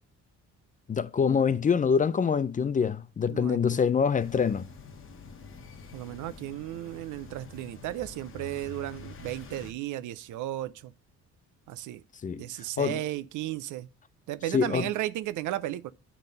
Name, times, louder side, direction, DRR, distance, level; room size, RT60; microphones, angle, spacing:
voice 1, 0.9-4.7 12.2-12.4 12.8-13.0 14.5-14.9, left 6 dB, 25° left, 0.4 m, -25 dB
voice 2, 3.3-3.8 5.9-10.9 11.7-12.0 12.4-13.9 14.3-15.9, right 14 dB, 85° right, 0.5 m, -34 dB
sound 1, 4.2-9.7, left 4 dB, 45° left, 1.2 m, -47 dB
9.2 x 3.8 x 3.9 m
cardioid pair, 90°, 30 cm